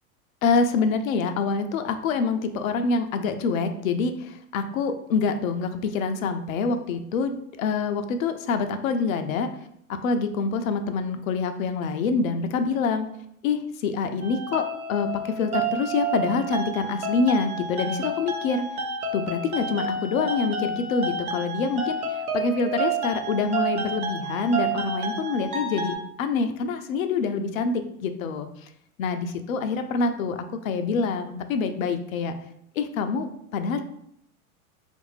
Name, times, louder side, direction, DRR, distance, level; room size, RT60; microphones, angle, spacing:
voice 1, 0.4-9.5 9.9-13.1 13.4-18.7 19.1-28.7 29.0-32.3 32.8-33.8, left 4 dB, 70° left, 7 dB, 0.5 m, -26 dB
sound 1, 14.2-26.0, right 3 dB, 80° right, 0.7 m, -30 dB
3.1 x 2.5 x 3.0 m, 0.73 s
hypercardioid pair, 95°, 43 cm